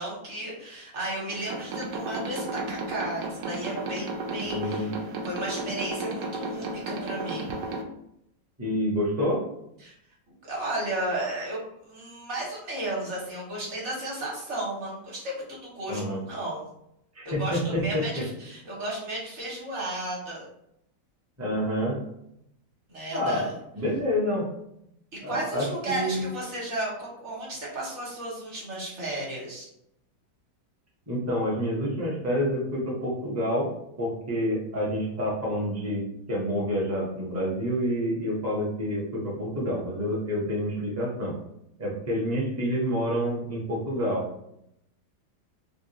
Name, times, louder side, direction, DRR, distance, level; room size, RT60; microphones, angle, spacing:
voice 1, 0.0-4.9 5.2-7.5 9.8-9.9 10.4-16.0 16.3-16.7 17.2-20.4 22.9-23.6 25.1-29.7, right 1 dB, 45° right, -4 dB, 1.3 m, -34 dB
sound 1, 1.3-7.8, right 2 dB, 85° right, 1.2 m, -34 dB
voice 2, 4.4-4.9 8.6-9.4 15.9-16.2 17.1-18.2 21.4-22.0 23.1-23.5 23.8-24.4 25.2-26.3 31.1-33.7 34.0-36.0 36.3-41.3 41.8-44.2, equal, 15° right, -4 dB, 0.5 m, -28 dB
3.6 x 2.4 x 2.7 m, 0.77 s
omnidirectional pair, 1.8 m